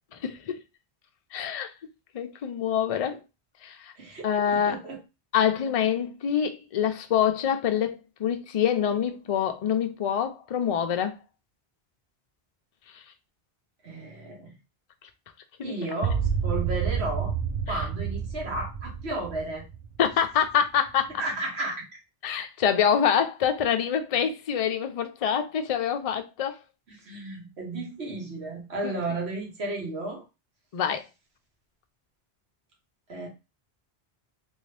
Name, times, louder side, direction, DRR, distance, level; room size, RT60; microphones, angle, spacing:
voice 1, 0.2-0.6 1.3-1.7 2.1-3.2 3.6-3.9 4.2-4.8 5.3-11.2 15.6-15.7 17.7-17.8 20.0-21.1 22.2-26.6 28.8-28.9 30.7-31.0, left 8 dB, 50° left, 0.4 m, -26 dB
voice 2, 4.0-5.0 13.8-14.5 15.6-17.3 17.7-19.6 21.2-21.8 26.9-30.2 33.1-33.3, right 2 dB, 80° right, 1.5 m, -33 dB
sound 1, 16.0-20.4, right 7 dB, 50° right, 0.5 m, -29 dB
3.1 x 2.6 x 3.3 m
omnidirectional pair, 1.1 m